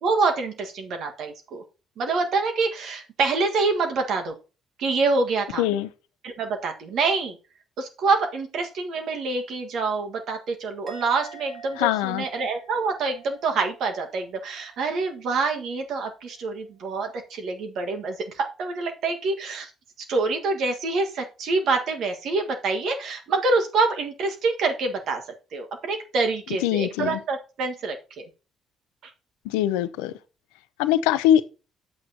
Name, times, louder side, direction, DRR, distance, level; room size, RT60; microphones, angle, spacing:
voice 1, 0.0-1.6 2.0-4.3 4.8-5.6 6.2-7.4 7.8-19.7 20.1-25.2 25.5-28.3, right 3 dB, 65° right, 1.6 m, -26 dB
voice 2, 5.6-5.9 11.8-12.2 26.6-27.2 29.4-30.1 30.8-31.4, left 11 dB, 80° left, 0.5 m, -22 dB
Musical instrument, 10.9-14.3 14.5-14.9, right 4 dB, 40° right, 2.7 m, -47 dB
9.5 x 8.0 x 2.9 m
hypercardioid pair, 55°, 0 cm